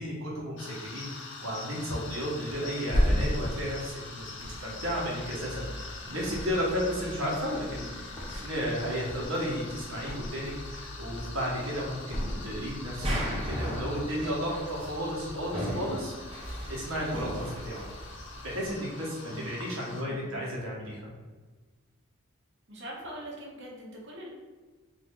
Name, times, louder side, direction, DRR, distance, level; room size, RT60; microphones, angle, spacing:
voice 1, 0.0-16.3 16.7-17.9 18.4-21.1, equal, 75° right, -4 dB, 1.4 m, -33 dB
sound 1, 0.6-20.0, left 3 dB, 60° left, 0.6 m, -44 dB
Thump thud, 2.9-5.8 6.2-7.0 7.3-8.7 9.1-10.6 11.0-11.5 12.1-13.1 13.4-13.6, equal, 15° left, 0.8 m, -33 dB
sound 2, 4.4-18.7, equal, 25° right, 1.0 m, -39 dB
voice 2, 20.0-20.5 22.7-24.3, right 1 dB, 55° right, -3 dB, 1.1 m, -43 dB
3.9 x 2.7 x 3.7 m, 1.4 s
head